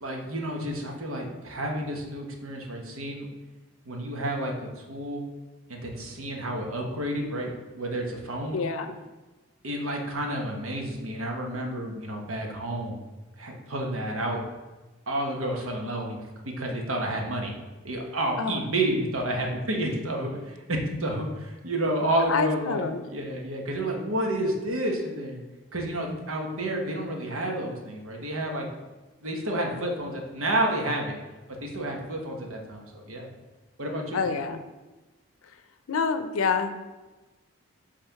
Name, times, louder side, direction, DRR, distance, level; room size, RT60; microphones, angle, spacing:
voice 1, 0.0-3.3 3.8-5.3 5.7-8.6 9.6-13.0 13.4-14.4 15.1-16.2 16.4-17.5 17.8-22.8 23.1-25.4 25.7-28.7 29.2-31.2 31.6-33.3 33.8-34.2, right 1 dB, 85° right, 1 dB, 1.1 m, -30 dB
voice 2, 8.5-9.0 18.4-18.6 22.3-23.0 34.1-34.6 35.9-36.8, left 5 dB, 85° left, 9 dB, 0.5 m, -27 dB
5.6 x 3.5 x 5.8 m, 1.2 s
head